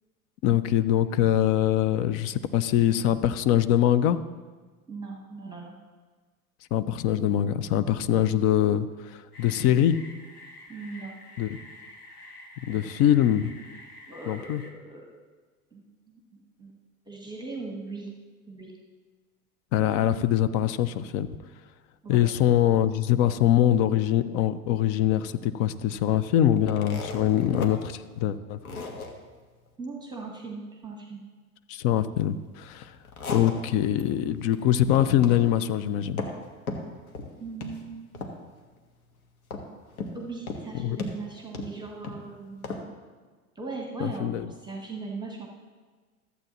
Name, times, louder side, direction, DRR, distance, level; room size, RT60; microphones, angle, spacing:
voice 1, 0.4-4.2 6.7-10.0 11.4-11.6 12.7-13.5 14.3-14.6 19.7-21.3 22.1-28.6 31.7-32.9 33.3-36.2 40.7-41.0 44.0-44.5, left 11 dB, 35° left, 12 dB, 0.4 m, -23 dB
voice 2, 4.9-5.7 10.7-11.2 14.1-15.0 15.7-15.8 16.6-16.7 17.1-18.1 18.5-18.7 22.0-22.2 29.8-31.2 37.4-38.1 40.1-42.9 43.6-45.5, right 3 dB, 10° right, 0 dB, 1.3 m, -39 dB
sound 1, 9.3-14.7, left 1 dB, 90° left, 1.2 m, -48 dB
sound 2, 26.6-27.7 28.1-28.2 28.6-29.1 32.8-34.0 34.4-34.6 34.9-35.4 35.7-36.4 36.7-37.3 37.6-37.8 38.1-38.6 39.5-40.2 40.5-40.7 41.0-42.2 42.6-42.8, left 3 dB, 70° left, 1.4 m, -36 dB
14.0 x 8.2 x 2.9 m, 1.4 s
figure-of-eight pair, 80°, 44 cm